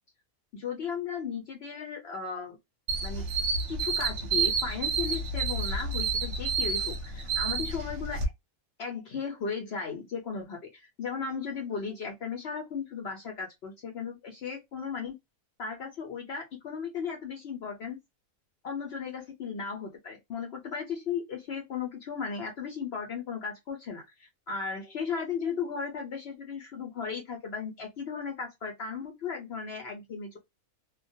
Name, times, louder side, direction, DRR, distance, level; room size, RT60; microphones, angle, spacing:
voice 1, 0.5-2.6 3.0-3.2 3.7-8.2 8.8-15.2 15.6-18.0 18.6-30.4, left 6 dB, 60° left, 0.7 m, -36 dB
sound 1, 2.9-8.3, right 4 dB, 65° right, 0.8 m, -30 dB
2.3 x 2.1 x 2.6 m
omnidirectional pair, 1.5 m